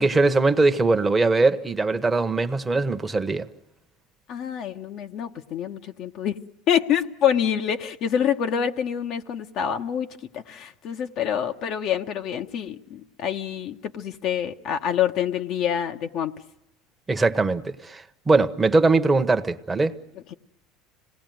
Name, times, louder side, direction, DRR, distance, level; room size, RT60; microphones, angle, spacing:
voice 1, 0.0-3.5 17.1-20.0, right 3 dB, 15° right, 1.0 m, -21 dB
voice 2, 4.3-6.3 6.7-10.1 10.3-16.3, left 9 dB, 55° left, 1.1 m, -26 dB
26.5 x 18.5 x 9.3 m
supercardioid pair, 100°, 0 cm